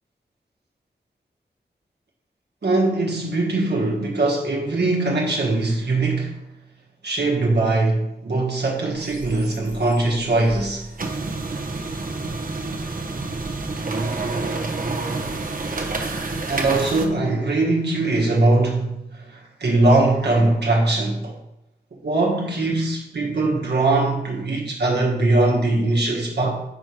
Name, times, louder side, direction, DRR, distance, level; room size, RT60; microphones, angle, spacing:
voice 1, 2.6-6.4 7.0-10.9 16.5-21.3 22.0-26.6, right 2 dB, 75° right, 1.5 m, -21 dB
sound 1, 8.9-17.1, right 3 dB, 55° right, 1.0 m, -29 dB
6.2 x 4.5 x 4.8 m
wide cardioid pair, 65°, 18 cm